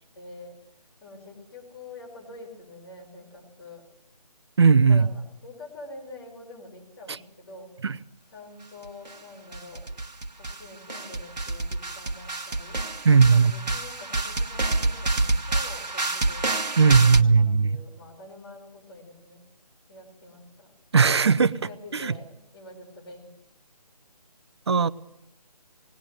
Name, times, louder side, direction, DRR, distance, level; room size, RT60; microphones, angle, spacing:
voice 1, 0.1-3.8 4.8-7.7 8.3-10.0 10.4-12.8 13.3-16.5 16.8-19.4 19.9-20.7 21.6-23.5, left 2 dB, 35° left, 0 dB, 5.6 m, -46 dB
voice 2, 4.6-5.1 7.8-7.9 13.0-13.5 16.8-17.8 20.9-21.5 21.9-22.1 24.7-24.9, right 5 dB, 40° right, 12 dB, 0.7 m, -17 dB
sound 1, 8.8-9.1 9.5-10.6 10.9-17.2, right 2 dB, 85° right, 1.3 m, -28 dB
19.5 x 17.5 x 7.7 m, 0.77 s
figure-of-eight pair, 160°, 21 cm